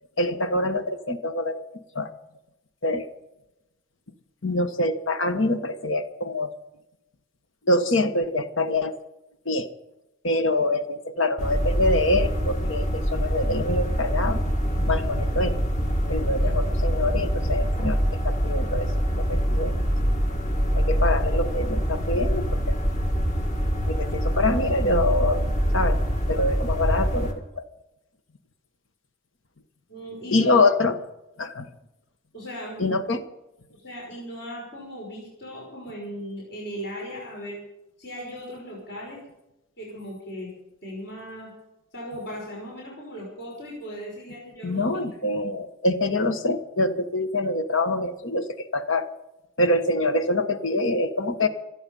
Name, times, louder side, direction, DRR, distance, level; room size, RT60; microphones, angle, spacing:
voice 1, 0.2-1.6 1.9-2.1 2.8-3.1 4.4-6.5 7.7-9.0 9.4-9.7 10.2-14.4 14.9-15.6 16.1-18.0 18.2-18.9 19.1-19.7 20.7-22.8 23.9-25.4 25.7-26.0 26.3-27.6 30.3-31.0 31.4-31.7 32.8-33.2 44.6-48.5 48.7-49.1 49.6-51.5, left 2 dB, 70° left, 9 dB, 1.3 m, -25 dB
sound 1, 11.4-27.3, equal, 35° left, 1.9 m, -24 dB
voice 2, 29.9-30.5 32.3-33.0 33.7-37.6 38.0-39.2 39.8-40.5 40.8-41.5 41.9-45.0, equal, 55° left, -3 dB, 5.7 m, -37 dB
26.5 x 8.9 x 5.5 m, 0.92 s
head